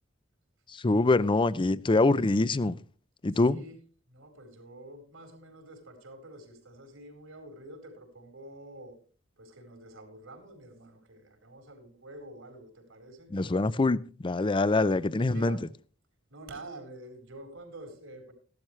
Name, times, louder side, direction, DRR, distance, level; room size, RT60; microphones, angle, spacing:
voice 1, 0.7-2.8 3.2-3.6 13.3-15.6, left 2 dB, 25° left, 0.5 m, -24 dB
voice 2, 3.2-3.8 4.1-9.0 9.4-13.3 15.2-15.7 16.3-18.3, right 1 dB, 75° right, 4.3 m, -47 dB
15.0 x 12.0 x 3.2 m
head